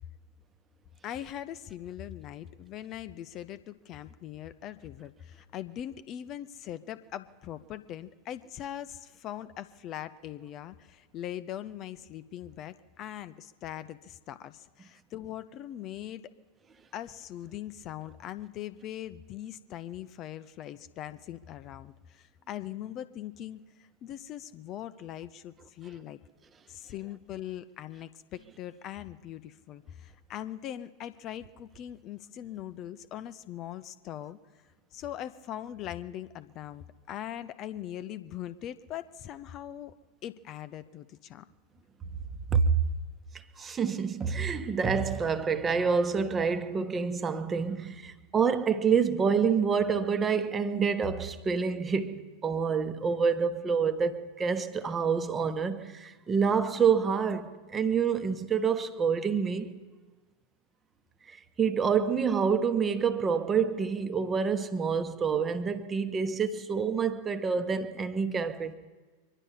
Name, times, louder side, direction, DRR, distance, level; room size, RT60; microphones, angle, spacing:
voice 1, 1.0-16.3 16.9-26.2 26.7-34.6 34.9-39.9 40.2-41.4, left 11 dB, 35° left, 0.6 m, -41 dB
voice 2, 43.6-59.7 61.3-68.7, right 6 dB, 20° right, 1.1 m, -27 dB
24.0 x 11.0 x 5.5 m
figure-of-eight pair, 90°, 0 cm